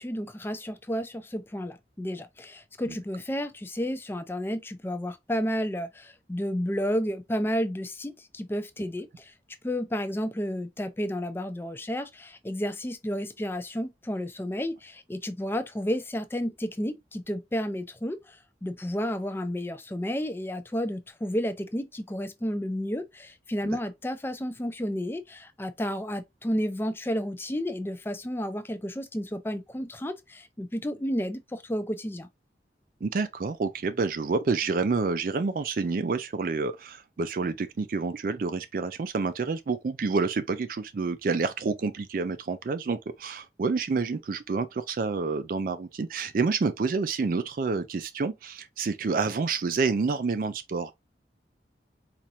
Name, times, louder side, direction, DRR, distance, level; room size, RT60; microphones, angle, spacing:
voice 1, 0.0-9.3 9.6-32.3, equal, 15° left, 0.4 m, -31 dB
voice 2, 33.0-50.9, right 4 dB, 50° right, 0.4 m, -28 dB
4.3 x 2.5 x 2.7 m
head